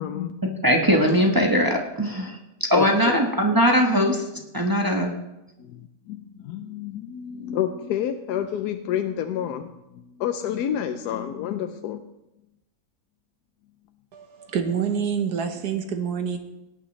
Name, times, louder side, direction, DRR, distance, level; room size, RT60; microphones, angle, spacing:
voice 1, 0.0-0.5 2.7-2.9 5.6-12.1, left 10 dB, 90° left, 6 dB, 1.2 m, -29 dB
voice 2, 0.6-2.4 2.7-4.3 4.5-5.1, equal, 15° right, 0 dB, 0.9 m, -20 dB
voice 3, 14.1-16.4, right 7 dB, 80° right, 6 dB, 1.6 m, -27 dB
18.0 x 9.0 x 3.2 m, 0.95 s
omnidirectional pair, 1.7 m